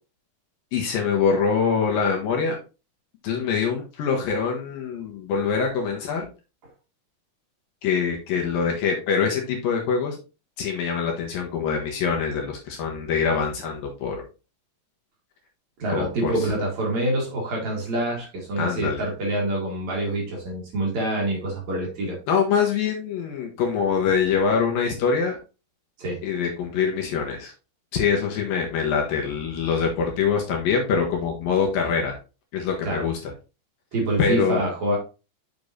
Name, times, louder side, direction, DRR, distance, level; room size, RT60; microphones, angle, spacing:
voice 1, 0.7-2.6 3.2-6.3 7.8-10.2 10.6-14.2 15.9-16.5 18.6-19.0 22.3-25.4 26.2-27.5 27.9-32.2 32.5-33.3 34.2-34.6, left 6 dB, 70° left, 1 dB, 2.6 m, -24 dB
voice 2, 15.8-22.2 26.0-26.2 32.8-33.1 33.9-35.0, right 1 dB, 50° right, -2 dB, 2.6 m, -26 dB
6.8 x 6.5 x 2.7 m, 0.31 s
omnidirectional pair, 4.8 m